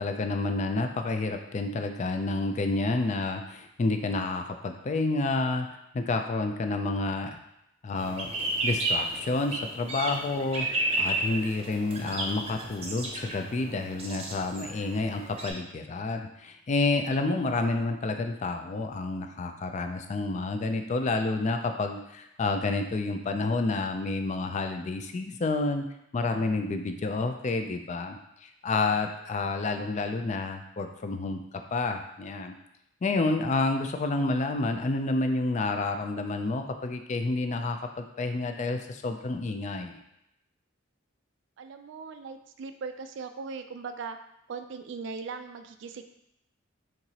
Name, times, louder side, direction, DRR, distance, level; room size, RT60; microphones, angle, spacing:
voice 1, 0.0-5.7 5.9-7.3 7.8-8.3 8.6-25.9 26.1-31.4 31.7-32.5 33.0-40.0, left 3 dB, 35° left, 5 dB, 0.4 m, -29 dB
sound 1, 8.0-15.5, right 2 dB, 30° right, 0.7 m, -32 dB
voice 2, 41.6-44.2 44.5-46.0, right 5 dB, 65° right, 8 dB, 0.3 m, -39 dB
4.5 x 3.8 x 2.8 m, 0.83 s
head